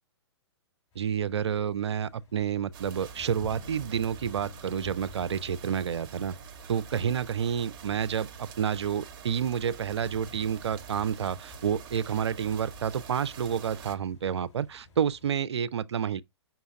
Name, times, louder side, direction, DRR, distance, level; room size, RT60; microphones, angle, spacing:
sound 1, 0.9-15.3, left 4 dB, 35° left, 2.4 m, -52 dB
voice 1, 1.0-6.4 6.7-16.2, right 8 dB, 70° right, 0.4 m, -29 dB
sound 2, 2.7-14.0, right 7 dB, 50° right, 0.8 m, -46 dB
5.8 x 2.2 x 4.1 m
figure-of-eight pair, 115°, 15 cm